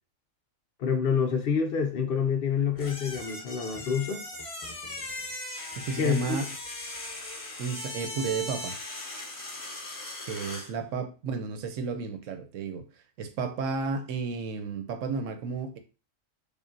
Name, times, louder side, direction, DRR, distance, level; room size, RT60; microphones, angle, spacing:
voice 1, 0.8-4.3 6.0-6.4, left 6 dB, 60° left, 0.6 m, -27 dB
sound 1, 2.7-10.7, left 2 dB, 30° left, 0.9 m, -39 dB
voice 2, 5.8-6.5 7.6-8.8 10.3-12.9 13.2-15.8, right 5 dB, 75° right, 1.0 m, -32 dB
4.9 x 2.5 x 2.6 m
omnidirectional pair, 1.4 m